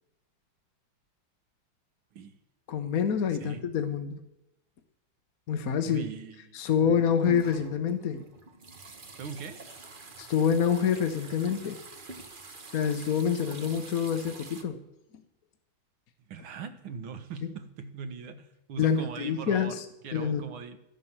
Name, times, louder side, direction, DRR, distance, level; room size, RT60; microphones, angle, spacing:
voice 1, 2.7-4.2 5.5-6.0 6.5-8.2 10.2-11.8 12.7-14.8 18.8-19.8 20.1-20.4, left 7 dB, 55° left, 7 dB, 1.2 m, -27 dB
voice 2, 3.3-3.6 5.8-7.1 9.2-9.6 16.3-20.8, right 5 dB, 75° right, 10 dB, 2.0 m, -41 dB
sound 1, 6.8-14.6, right 2 dB, 30° right, 1.1 m, -45 dB
12.5 x 11.0 x 7.3 m, 0.89 s
omnidirectional pair, 2.3 m